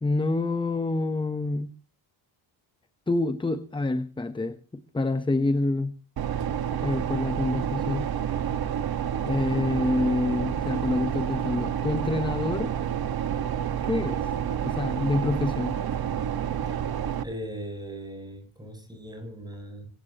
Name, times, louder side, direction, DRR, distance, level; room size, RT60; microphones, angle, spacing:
voice 1, 0.0-1.7 3.1-5.9 6.8-8.1 9.2-12.7 13.8-14.3 14.6-15.8, left 2 dB, 10° left, 11 dB, 0.9 m, -27 dB
sound 1, 6.2-17.2, right 9 dB, 50° right, 1.6 m, -29 dB
voice 2, 17.2-19.9, right 1 dB, 10° right, 4 dB, 7.9 m, -39 dB
25.0 x 14.5 x 3.0 m, 0.38 s
cardioid pair, 160°, 48 cm